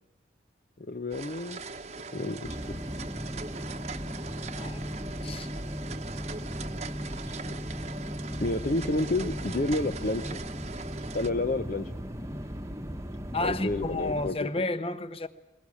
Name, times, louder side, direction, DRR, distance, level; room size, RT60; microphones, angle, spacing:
voice 1, 0.8-2.6 8.4-10.4 11.1-11.9 13.4-14.5, left 2 dB, 45° left, 0.8 m, -30 dB
sound 1, 1.1-11.3, right 4 dB, 35° right, 1.0 m, -41 dB
sound 2, 2.4-14.3, equal, 15° right, 1.1 m, -37 dB
voice 2, 4.5-4.9 5.2-5.5 13.3-15.3, left 2 dB, 30° left, 1.1 m, -31 dB
22.0 x 21.5 x 8.5 m
head